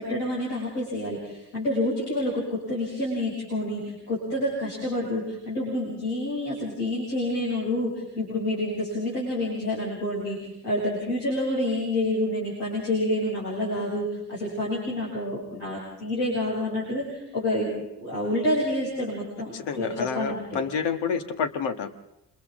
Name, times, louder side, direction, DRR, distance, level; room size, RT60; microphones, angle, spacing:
voice 1, 0.0-10.4 10.6-20.6, left 1 dB, 80° left, -8 dB, 7.7 m, -28 dB
voice 2, 19.5-21.9, left 6 dB, 60° left, 8 dB, 1.8 m, -29 dB
29.0 x 26.0 x 3.8 m, 0.85 s
figure-of-eight pair, 45°, 47 cm